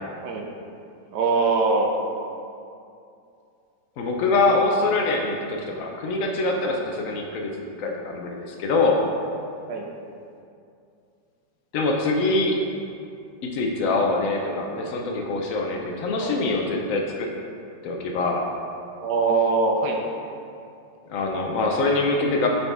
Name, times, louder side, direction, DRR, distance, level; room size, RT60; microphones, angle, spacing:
voice 1, 1.1-1.9 9.7-9.9 16.2-16.4 19.0-20.0, right 4 dB, 70° right, 1 dB, 1.1 m, -22 dB
voice 2, 4.0-9.0 11.7-12.6 13.4-17.3 17.8-18.5 21.1-22.5, left 3 dB, 70° left, 1 dB, 0.8 m, -24 dB
7.4 x 4.2 x 3.4 m, 2.5 s
omnidirectional pair, 2.1 m